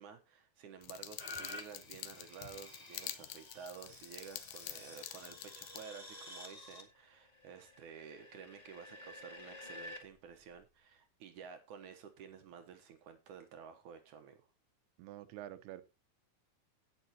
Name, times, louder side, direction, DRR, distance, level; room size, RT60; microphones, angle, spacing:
voice 1, 0.0-14.5, right 7 dB, 65° right, 7 dB, 2.1 m, -52 dB
sound 1, 0.8-5.8, left 13 dB, 75° left, 1.8 m, -47 dB
sound 2, 1.2-10.0 10.6-10.7, left 1 dB, 25° left, 0.8 m, -51 dB
voice 2, 15.0-15.8, right 13 dB, 90° right, 12 dB, 2.9 m, -47 dB
17.5 x 6.7 x 2.9 m, 0.27 s
omnidirectional pair, 4.5 m